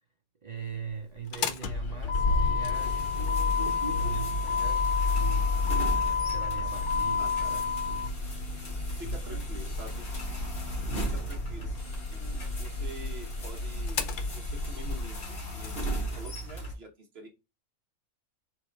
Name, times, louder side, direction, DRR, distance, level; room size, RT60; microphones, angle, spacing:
voice 1, 0.4-5.5 6.3-8.2 8.9-9.7, right 6 dB, 65° right, 0.4 m, -41 dB
Motor vehicle (road), 1.2-15.9, left 4 dB, 85° left, 0.4 m, -30 dB
sound 1, 2.7-16.7, right 1 dB, 40° left, 1.4 m, -37 dB
voice 2, 7.2-7.6 8.8-10.0 11.0-11.7 12.1-17.3, right 2 dB, 45° right, 1.3 m, -47 dB
3.6 x 2.9 x 4.5 m
omnidirectional pair, 1.5 m